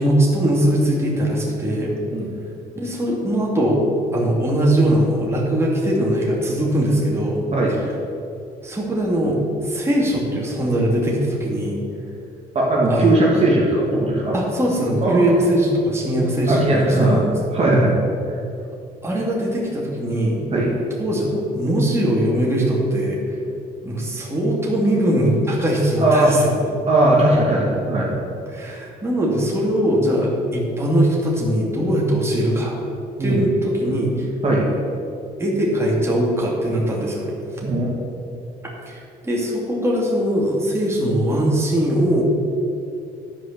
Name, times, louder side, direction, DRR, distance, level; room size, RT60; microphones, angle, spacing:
voice 1, 0.0-1.9 2.7-3.8 4.1-7.9 8.6-11.8 12.9-13.1 14.3-17.3 19.0-20.5 21.0-23.4 23.8-26.6 28.5-32.7 33.2-34.3 35.4-37.3 38.9-42.2, right 1 dB, 15° right, -4 dB, 2.5 m, -21 dB
voice 2, 12.5-14.4 15.0-15.3 16.2-17.2 17.5-17.9 20.5-20.7 26.0-26.3 26.9-28.2 33.2-33.4 34.4-34.7 37.6-37.9, right 2 dB, 40° right, -4 dB, 2.1 m, -18 dB
11.0 x 5.1 x 6.7 m, 2.6 s
cardioid pair, 100°, 17 cm